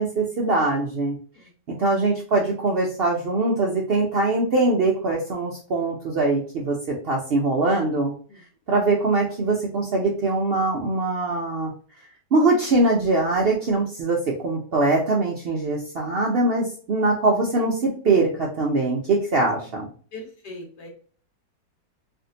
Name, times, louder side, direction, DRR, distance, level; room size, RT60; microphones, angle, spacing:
voice 1, 0.0-1.1 1.7-6.8 7.0-8.1 8.7-11.7 12.3-19.9, right 2 dB, 90° right, -2 dB, 0.5 m, -22 dB
voice 2, 20.1-20.9, left 2 dB, 75° left, -1 dB, 1.8 m, -40 dB
3.4 x 2.5 x 2.7 m, 0.42 s
omnidirectional pair, 1.8 m